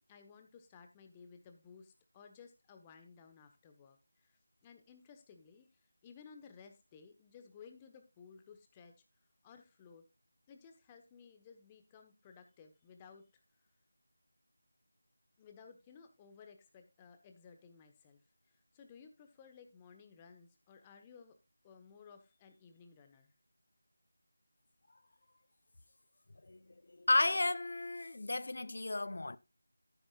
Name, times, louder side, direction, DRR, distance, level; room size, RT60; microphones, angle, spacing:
voice 1, 0.0-8.9 9.4-10.0 10.5-13.4 15.4-18.2 18.5-21.4 21.6-23.3, left 6 dB, 15° left, 1.1 m, -58 dB
voice 2, 26.9-29.4, left 2 dB, 55° left, 0.7 m, -33 dB
12.0 x 9.9 x 2.4 m
figure-of-eight pair, 165°, 0 cm